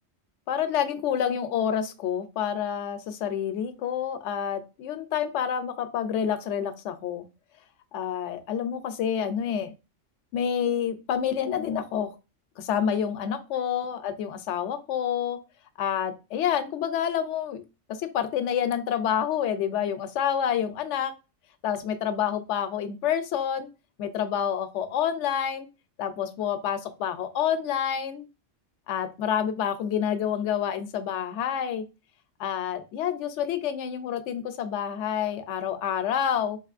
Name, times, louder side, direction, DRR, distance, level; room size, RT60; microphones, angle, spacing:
voice 1, 0.5-7.2 7.9-9.7 10.3-12.1 12.6-15.4 15.8-17.6 17.9-21.1 21.6-23.7 24.0-25.7 26.0-28.3 28.9-31.8 32.4-36.6, left 8 dB, 75° left, 10 dB, 0.9 m, -28 dB
4.2 x 2.9 x 2.4 m, 0.29 s
omnidirectional pair, 1.3 m